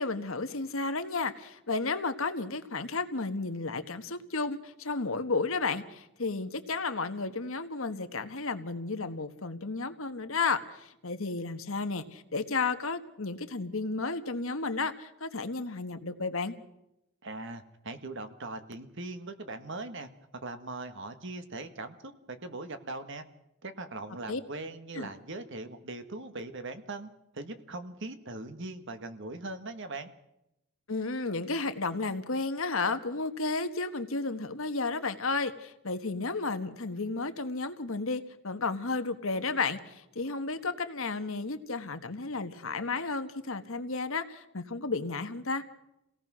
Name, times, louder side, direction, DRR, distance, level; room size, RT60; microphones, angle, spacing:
voice 1, 0.0-16.5 24.3-24.4 24.9-25.1 30.9-45.6, left 3 dB, 65° left, 9 dB, 1.4 m, -33 dB
voice 2, 17.2-20.1 20.4-23.2 23.6-27.1 27.3-30.1, right 2 dB, 55° right, 9 dB, 1.6 m, -40 dB
28.0 x 18.0 x 6.2 m, 0.86 s
head